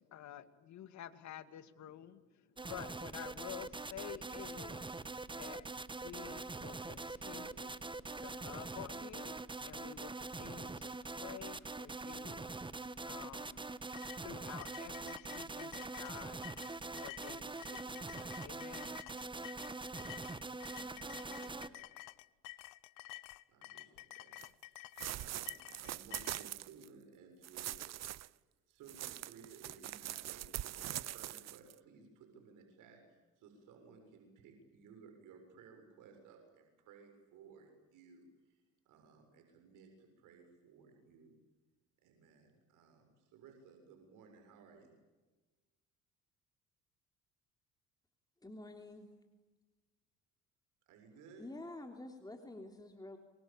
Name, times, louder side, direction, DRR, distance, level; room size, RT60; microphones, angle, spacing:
voice 1, 0.0-5.0 5.4-7.8 8.2-12.5 13.0-13.6 14.2-16.4 17.0-19.0, left 11 dB, 60° left, 11 dB, 2.3 m, -51 dB
sound 1, 2.6-21.7, right 3 dB, 15° right, 1.3 m, -44 dB
sound 2, 13.9-26.5, left 19 dB, 80° left, 0.9 m, -51 dB
voice 2, 20.6-21.8 23.5-28.0 28.7-41.4 42.0-44.9 50.9-51.4, right 5 dB, 75° right, 4 dB, 6.9 m, -59 dB
sound 3, 24.4-24.5 25.0-26.9 27.4-28.3 28.9-31.7, right 13 dB, 55° right, 0.9 m, -43 dB
voice 3, 48.4-49.1 51.3-53.2, left 2 dB, 10° left, 4 dB, 3.3 m, -48 dB
27.5 x 23.0 x 8.9 m, 1.2 s
supercardioid pair, 85°, 32 cm